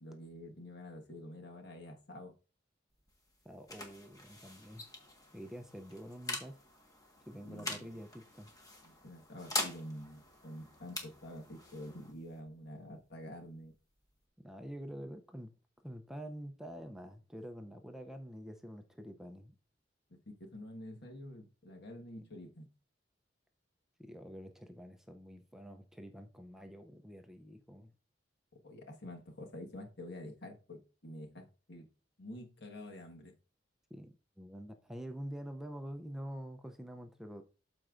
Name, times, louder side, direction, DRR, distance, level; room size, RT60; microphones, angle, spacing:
voice 1, 0.0-2.3 7.4-8.0 8.8-13.7 20.3-22.7 28.6-31.9 32.2-33.3, left 1 dB, 65° left, 1.4 m, -48 dB
sound 1, 2.9-14.3, left 1 dB, 20° left, 1.3 m, -45 dB
voice 2, 3.4-4.8 5.3-6.6 7.3-8.5 14.4-15.5 15.8-19.6 24.0-27.9 33.9-37.4, equal, ahead, 0.5 m, -47 dB
12.5 x 4.4 x 2.5 m
head